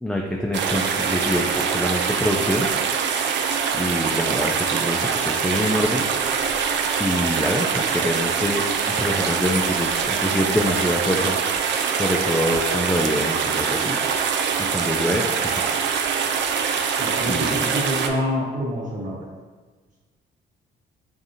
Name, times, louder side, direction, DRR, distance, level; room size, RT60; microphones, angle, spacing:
voice 1, 0.0-2.7 3.8-6.1 7.0-11.4 11.9-14.4 14.7-15.3 15.8-16.1 17.3-17.7, left 1 dB, 5° left, -1 dB, 0.3 m, -25 dB
sound 1, 0.5-18.1, right 6 dB, 65° right, 0.4 m, -24 dB
voice 2, 17.0-19.2, equal, 40° right, -5 dB, 1.4 m, -27 dB
4.8 x 2.7 x 2.7 m, 1.4 s
cardioid pair, 90°, 20 cm